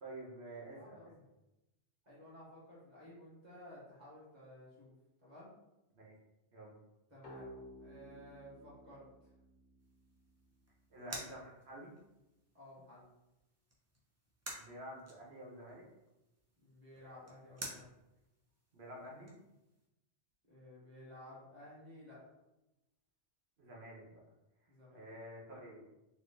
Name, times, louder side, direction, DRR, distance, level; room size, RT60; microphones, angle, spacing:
voice 1, 0.0-1.1 5.9-6.1 6.5-6.8 10.9-11.9 14.5-15.9 18.7-19.3 23.6-24.2 24.9-25.8, right 1 dB, 70° right, -3 dB, 1.2 m, -49 dB
voice 2, 0.7-1.2 2.0-4.9 5.2-5.5 7.1-9.3 12.5-13.1 16.6-17.9 20.5-22.2 24.7-25.1, left 1 dB, 40° right, -9 dB, 1.3 m, -55 dB
sound 1, 7.2-10.7, equal, 65° left, 1.4 m, -55 dB
sound 2, 9.8-19.9, right 1 dB, 15° right, 0.6 m, -53 dB
4.2 x 2.6 x 3.9 m, 0.95 s
omnidirectional pair, 1.1 m